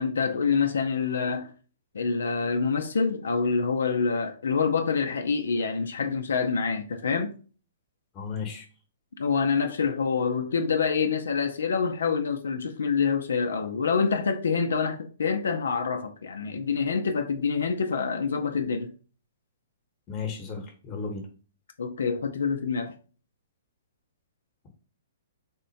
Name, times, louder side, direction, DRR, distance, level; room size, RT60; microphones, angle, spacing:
voice 1, 0.0-1.5 1.9-7.3 9.2-18.9 21.8-22.9, left 5 dB, 85° left, 0.5 m, -26 dB
voice 2, 8.1-8.7 20.1-21.3, left 5 dB, 25° left, 1.0 m, -34 dB
3.6 x 2.1 x 4.0 m
hypercardioid pair, 145°, 0 cm